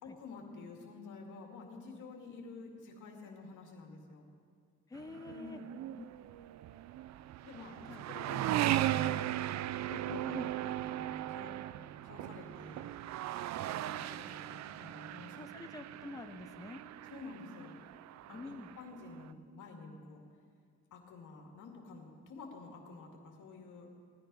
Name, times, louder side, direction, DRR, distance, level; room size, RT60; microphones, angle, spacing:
voice 1, 0.0-4.2 5.4-5.7 7.4-7.8 8.1-9.4 9.9-11.6 12.0-12.9 13.6-15.6 17.1-17.8 18.3-20.2 20.9-23.9, left 4 dB, 80° left, 1 dB, 2.3 m, -50 dB
voice 2, 4.9-5.6 6.0-6.1 7.9-8.0 9.8-10.5 14.0-14.1 15.3-16.8 18.3-18.7, left 3 dB, 10° left, 8 dB, 0.6 m, -47 dB
sound 1, 4.9-19.3, right 13 dB, 65° right, 0.4 m, -38 dB
16.0 x 10.0 x 5.5 m, 2.2 s
cardioid pair, 90°, 30 cm